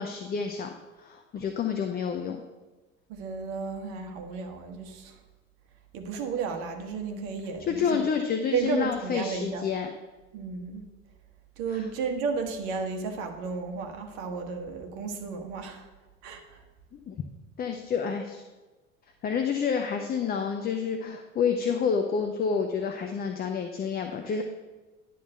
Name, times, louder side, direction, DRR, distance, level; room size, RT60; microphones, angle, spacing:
voice 1, 0.0-2.4 7.7-9.9 11.7-11.9 16.9-17.2 17.6-18.4 19.2-24.4, left 6 dB, 25° left, 5 dB, 0.6 m, -29 dB
voice 2, 3.1-5.2 5.9-8.0 8.5-9.6 10.3-10.9 11.6-15.9 16.2-16.6, right 5 dB, 55° right, 4 dB, 1.4 m, -33 dB
10.5 x 3.9 x 6.6 m, 1.2 s
figure-of-eight pair, 70°, 40 cm